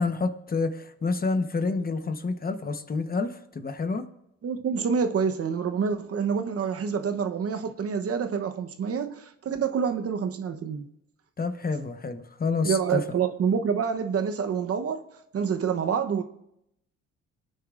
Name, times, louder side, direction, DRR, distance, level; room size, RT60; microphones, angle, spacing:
voice 1, 0.0-4.1 11.4-13.0, left 4 dB, 30° left, 1.0 m, -28 dB
voice 2, 4.4-10.9 12.6-15.0 15.3-16.2, right 6 dB, 50° right, 0.9 m, -27 dB
27.5 x 9.2 x 2.5 m
cardioid pair, 90°, 30 cm